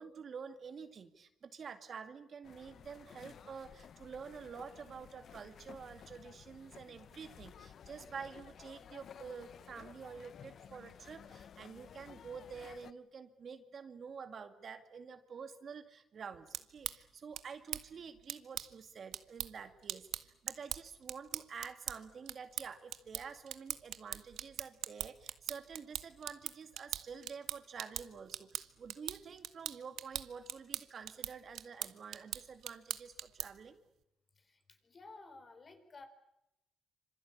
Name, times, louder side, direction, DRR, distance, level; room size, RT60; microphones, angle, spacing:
voice 1, 0.0-33.8, right 6 dB, 50° right, 8 dB, 2.2 m, -49 dB
sound 1, 2.4-12.9, left 8 dB, 60° left, 1.0 m, -55 dB
sound 2, 16.3-33.7, right 11 dB, 75° right, 1.1 m, -43 dB
voice 2, 34.4-36.1, left 3 dB, 40° left, 7 dB, 4.5 m, -54 dB
26.5 x 25.0 x 8.7 m, 0.88 s
cardioid pair, 90°, 0 cm